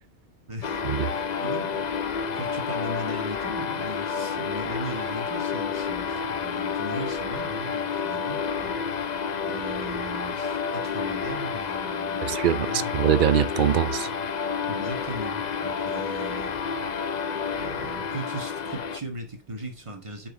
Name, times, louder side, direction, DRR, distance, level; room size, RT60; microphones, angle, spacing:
voice 1, 0.5-1.0 1.4-1.8 2.3-8.8 9.5-12.9 14.7-16.6 17.6-20.3, right 1 dB, 25° right, 1.6 m, -38 dB
sound 1, 0.6-19.0, left 6 dB, 45° left, 0.6 m, -30 dB
voice 2, 12.2-14.1, right 9 dB, 55° right, 0.6 m, -23 dB
6.4 x 4.9 x 4.0 m
omnidirectional pair, 1.3 m